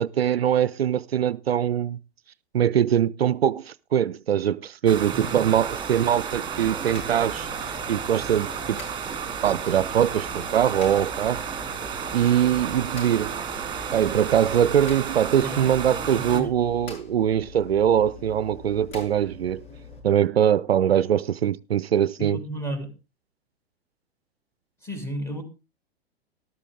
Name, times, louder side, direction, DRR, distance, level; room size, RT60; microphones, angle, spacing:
voice 1, 0.0-2.0 2.5-8.8 9.4-11.5 12.1-13.4 13.9-19.6 20.0-22.4, right 9 dB, 70° right, 0.5 m, -22 dB
sound 1, 4.9-16.4, right 7 dB, 15° right, 2.3 m, -32 dB
voice 2, 5.1-5.5 15.4-16.5 22.2-22.9 24.8-25.4, right 1 dB, 10° left, 3.0 m, -33 dB
sound 2, 6.5-20.0, left 5 dB, 55° left, 8.0 m, -44 dB
13.0 x 12.5 x 3.6 m
figure-of-eight pair, 100°, 32 cm